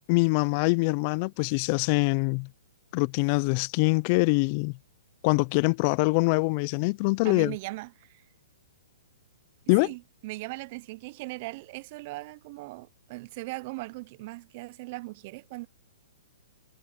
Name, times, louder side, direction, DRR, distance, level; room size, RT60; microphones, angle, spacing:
voice 1, 0.1-2.5 2.9-4.7 5.2-7.5 9.7-9.9, left 28 dB, 40° left, 0.5 m, -24 dB
voice 2, 7.2-8.2 9.8-15.7, right 22 dB, 45° right, 0.6 m, -39 dB
hypercardioid pair, 130°, 0 cm